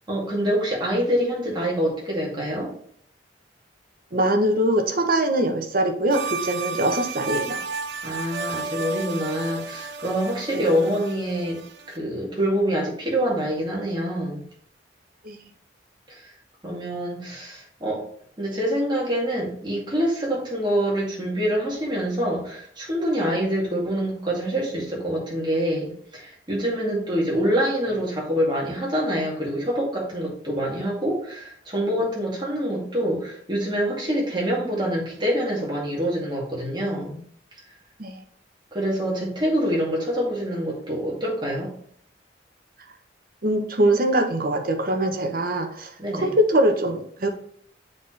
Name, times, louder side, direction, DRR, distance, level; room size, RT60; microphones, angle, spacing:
voice 1, 0.1-2.7 8.0-11.6 11.9-14.4 16.1-16.3 16.6-18.1 18.4-37.2 38.7-41.7 46.0-46.3, equal, 25° right, -4 dB, 2.2 m, -26 dB
voice 2, 4.1-7.6 10.5-10.6 15.2-15.4 38.0-38.2 43.4-47.3, right 1 dB, 50° right, 6 dB, 0.9 m, -22 dB
sound 1, 6.1-12.0, right 4 dB, 70° right, 0.5 m, -33 dB
7.5 x 4.2 x 3.2 m, 0.62 s
head